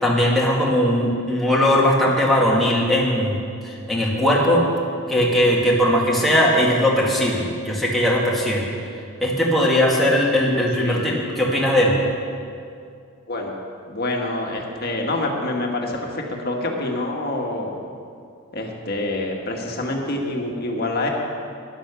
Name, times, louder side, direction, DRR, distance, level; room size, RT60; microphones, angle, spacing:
voice 1, 0.0-3.4 3.7-4.6 5.1-8.6 9.2-11.9, equal, ahead, -5 dB, 2.1 m, -19 dB
voice 2, 13.9-17.8 18.5-21.1, left 2 dB, 45° left, 0 dB, 1.7 m, -26 dB
11.5 x 11.0 x 7.0 m, 2.3 s
head